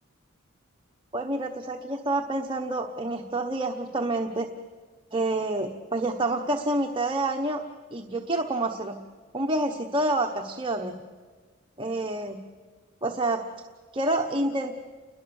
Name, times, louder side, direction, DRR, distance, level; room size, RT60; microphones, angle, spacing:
voice 1, 1.1-4.5 5.1-7.6 7.9-9.0 9.3-11.0 11.8-12.4 13.0-13.4 13.9-14.7, right 2 dB, 25° right, 3 dB, 1.1 m, -28 dB
29.5 x 22.0 x 7.1 m, 1.5 s
head